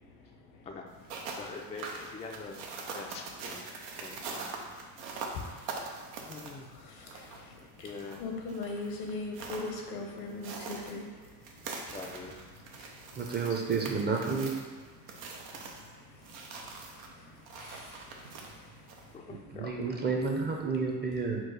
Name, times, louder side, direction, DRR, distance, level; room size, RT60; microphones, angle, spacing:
sound 1, 0.9-19.2, right 4 dB, 85° right, 0.8 m, -44 dB
voice 1, 1.3-3.7 4.0-4.6 6.3-6.7 7.6-8.2 11.9-12.4 12.8-12.9 19.1-20.1, left 4 dB, 15° left, 1 dB, 0.3 m, -45 dB
voice 2, 6.9-7.2 7.8-7.9 8.2-11.1 17.5-17.9, left 3 dB, 85° left, 1 dB, 1.0 m, -38 dB
voice 3, 13.2-14.5 19.5-21.4, right 4 dB, 25° right, 1 dB, 0.6 m, -30 dB
4.5 x 2.3 x 4.7 m, 1.4 s
supercardioid pair, 90°, 43 cm